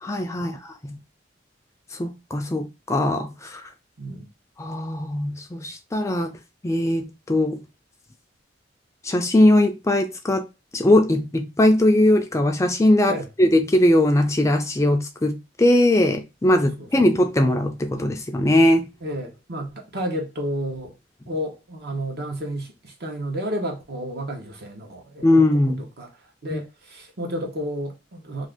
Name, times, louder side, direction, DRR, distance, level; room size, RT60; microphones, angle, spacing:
voice 1, 0.0-1.0 1.9-3.7 4.6-6.4 6.6-7.6 9.0-10.4 10.7-18.9 25.2-25.8 26.5-26.6, left 1 dB, 15° left, 0.4 m, -20 dB
voice 2, 4.0-4.3 13.1-13.2 16.5-16.9 19.0-20.9 21.3-25.3 26.0-26.1 26.4-28.5, equal, 60° right, 0.9 m, -31 dB
2.6 x 2.5 x 3.4 m
head